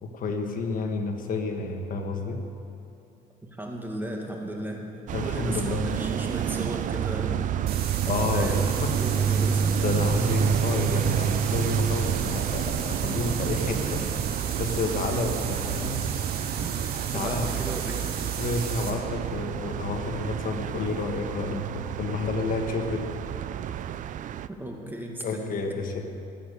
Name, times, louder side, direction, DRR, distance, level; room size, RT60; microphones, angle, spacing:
voice 1, 0.0-2.4 5.1-5.9 8.1-9.0 9.7-16.0 17.1-17.5 18.4-23.1 25.2-26.0, left 3 dB, 55° left, 4 dB, 1.5 m, -30 dB
voice 2, 3.4-4.8 5.2-7.5 8.2-8.7 9.0-9.8 15.7-16.1 16.6-18.1 24.5-25.6, right 1 dB, 10° right, 0 dB, 2.1 m, -35 dB
sound 1, 5.1-24.5, right 9 dB, 50° right, 0.5 m, -28 dB
sound 2, 7.7-18.9, right 7 dB, 70° right, 2.2 m, -36 dB
19.0 x 8.4 x 6.9 m, 2.7 s
cardioid pair, 110°, 17 cm